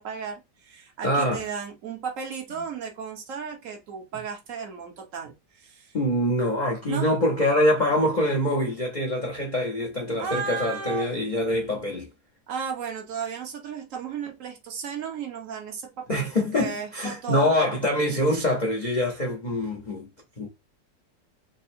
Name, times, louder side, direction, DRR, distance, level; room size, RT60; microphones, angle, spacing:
voice 1, 0.0-6.0 6.9-7.1 10.2-11.1 12.5-17.5, right 6 dB, 50° right, 1.2 m, -34 dB
voice 2, 1.0-1.4 5.9-12.1 16.1-20.1 20.4-20.5, left 1 dB, 70° left, 0.4 m, -24 dB
3.7 x 2.0 x 4.2 m
omnidirectional pair, 2.0 m